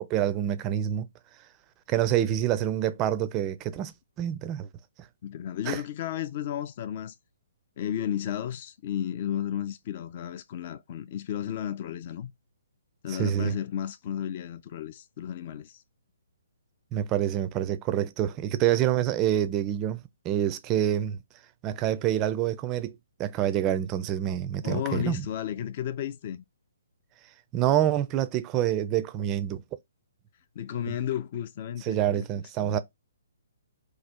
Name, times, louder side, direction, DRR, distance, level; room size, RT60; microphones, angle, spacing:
voice 1, 0.1-1.1 1.9-4.7 5.7-5.8 13.1-13.5 16.9-21.2 21.6-25.3 27.5-29.6 30.9-31.0 31.8-32.8, right 11 dB, 25° right, 0.4 m, -27 dB
voice 2, 5.2-7.2 7.8-12.3 13.0-15.8 24.6-26.4 30.6-32.8, left 10 dB, 40° left, 0.4 m, -33 dB
3.3 x 2.3 x 4.2 m
figure-of-eight pair, 130°, 0 cm